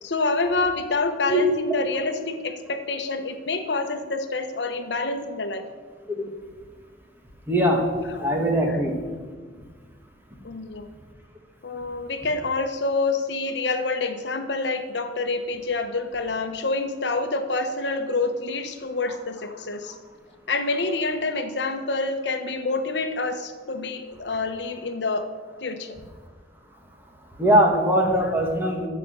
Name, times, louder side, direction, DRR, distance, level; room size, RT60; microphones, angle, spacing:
voice 1, 0.0-5.6 8.1-8.2 10.4-10.9 11.6-20.0 20.5-25.3 25.6-26.0, left 3 dB, 70° left, 7 dB, 0.9 m, -27 dB
voice 2, 7.5-7.9 8.2-8.9 27.4-28.9, right 1 dB, 10° right, 0 dB, 1.9 m, -21 dB
13.0 x 5.1 x 7.5 m, 1.5 s
head